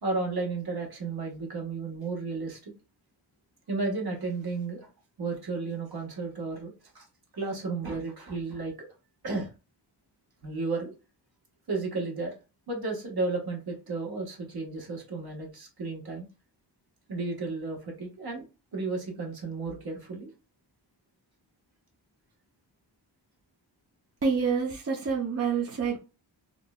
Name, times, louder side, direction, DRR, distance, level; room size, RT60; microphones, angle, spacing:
voice 1, 0.0-2.7 3.7-4.9 5.2-7.0 7.3-8.9 9.2-9.5 10.4-10.9 11.7-12.3 12.7-16.3 17.1-18.5 18.7-20.3, right 3 dB, 55° right, 1.3 m, -33 dB
voice 2, 24.2-26.0, right 5 dB, 35° right, 0.6 m, -27 dB
3.6 x 2.0 x 2.2 m
cardioid pair, 65°, 44 cm